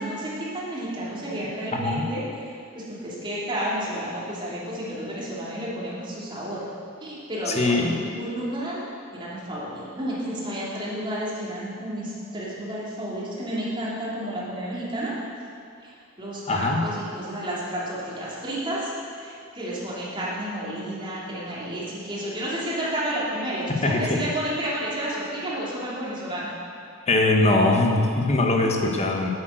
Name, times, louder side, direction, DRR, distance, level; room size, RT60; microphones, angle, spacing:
voice 1, 0.0-6.7 7.0-8.8 9.1-15.1 15.8-26.5, right 1 dB, 25° right, -7 dB, 3.0 m, -31 dB
voice 2, 1.7-2.0 7.5-8.0 16.5-16.9 23.8-24.2 27.1-29.3, left 2 dB, 35° left, 2 dB, 1.3 m, -21 dB
9.1 x 8.4 x 7.8 m, 2.4 s
head